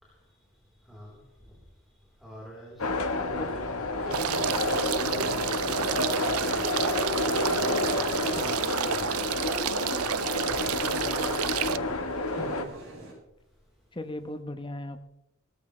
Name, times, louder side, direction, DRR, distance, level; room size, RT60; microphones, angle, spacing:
voice 1, 0.0-12.4 13.3-14.0, right 1 dB, ahead, -5 dB, 3.9 m, -48 dB
sound 1, 2.8-12.6, left 2 dB, 80° left, 1.5 m, -29 dB
sound 2, 3.9-13.1, right 1 dB, 60° right, 6.9 m, -44 dB
sound 3, 4.1-11.8, right 9 dB, 85° right, 0.5 m, -30 dB
voice 2, 12.4-12.7 13.9-15.1, left 1 dB, 25° left, 8 dB, 1.1 m, -37 dB
18.5 x 14.0 x 3.3 m, 0.90 s
head